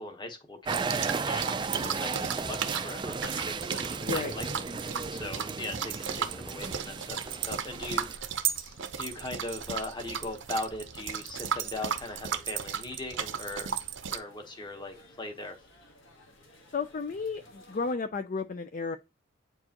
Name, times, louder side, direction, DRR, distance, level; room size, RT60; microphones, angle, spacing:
voice 1, 0.0-4.5 4.7-13.7 14.1-15.5, left 2 dB, 20° left, 1.1 m, -40 dB
sound 1, 0.7-8.2, right 4 dB, 25° right, 0.4 m, -34 dB
sound 2, 0.7-14.2, right 7 dB, 60° right, 0.7 m, -35 dB
voice 2, 4.0-4.3 16.7-19.0, left 4 dB, 40° left, 0.4 m, -33 dB
sound 3, 6.4-17.9, left 1 dB, 65° left, 1.5 m, -58 dB
8.5 x 4.6 x 2.9 m
head